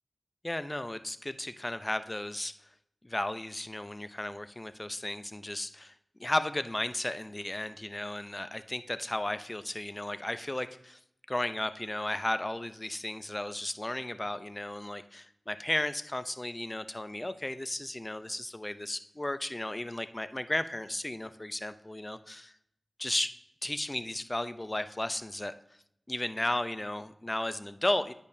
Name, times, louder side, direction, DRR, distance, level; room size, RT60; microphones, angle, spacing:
voice 1, 0.4-2.5 3.0-5.9 6.2-11.0 11.3-22.5 23.0-23.3 23.6-25.5 26.1-28.1, left 1 dB, 25° left, 12 dB, 0.5 m, -34 dB
10.5 x 5.2 x 2.7 m, 0.74 s
cardioid pair, 40°, 0 cm